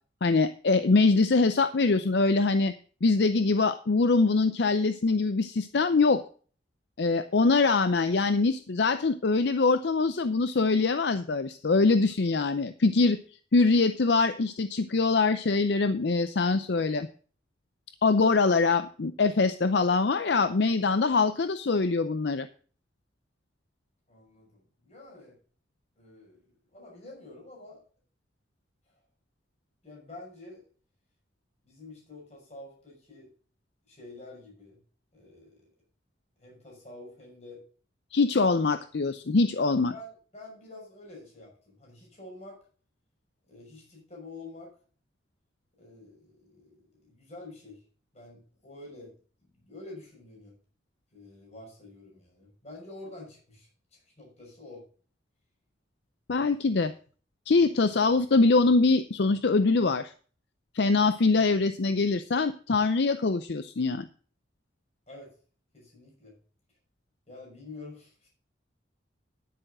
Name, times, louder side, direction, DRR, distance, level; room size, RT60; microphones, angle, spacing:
voice 1, 0.2-2.7 3.0-6.2 7.0-13.2 13.5-17.1 18.0-22.5 38.1-39.9 56.3-56.9 57.5-60.1 60.7-64.1, left 3 dB, 65° left, 12 dB, 0.5 m, -23 dB
voice 2, 24.1-25.4 26.0-26.4 26.7-27.8 28.9-29.0 29.8-30.6 31.6-33.3 33.8-34.8 35.1-35.6 36.4-37.6 39.5-42.6 43.5-44.7 45.8-47.8 48.1-49.1 49.4-50.5 51.1-53.7 54.2-54.8 65.1-65.3 65.7-66.4 67.3-68.3, left 2 dB, 35° left, -2 dB, 6.3 m, -48 dB
10.5 x 10.0 x 3.8 m, 0.41 s
head